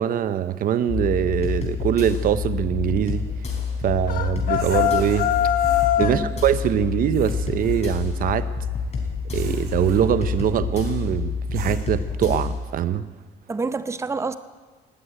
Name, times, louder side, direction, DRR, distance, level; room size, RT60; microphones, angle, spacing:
voice 1, 0.0-3.2 3.8-5.3 6.0-8.5 9.3-13.0, right 10 dB, 55° right, 13 dB, 0.7 m, -23 dB
sound 1, 0.9-12.6, left 6 dB, 40° left, 4.1 m, -28 dB
sound 2, 3.0-12.1, right 6 dB, 85° right, 4.5 m, -45 dB
sound 3, 4.1-6.2, left 11 dB, 55° left, 1.2 m, -22 dB
voice 2, 6.0-6.4 13.5-14.3, right 4 dB, 15° right, 11 dB, 0.7 m, -28 dB
19.5 x 8.1 x 8.8 m, 1.4 s
cardioid pair, 110°, 17 cm